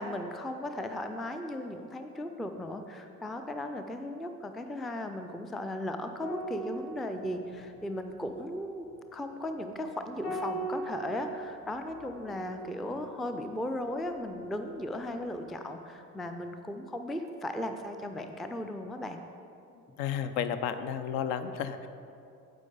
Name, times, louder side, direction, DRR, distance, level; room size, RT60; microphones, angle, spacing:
voice 1, 0.0-8.9 9.1-19.2, left 1 dB, ahead, 7 dB, 0.4 m, -36 dB
sound 1, 6.2-14.9 15.2-15.4, right 2 dB, 85° left, 1.1 m, -42 dB
voice 2, 20.0-21.9, left 8 dB, 55° left, 11 dB, 0.6 m, -32 dB
9.5 x 7.7 x 3.9 m, 2.7 s
figure-of-eight pair, 50°, 45 cm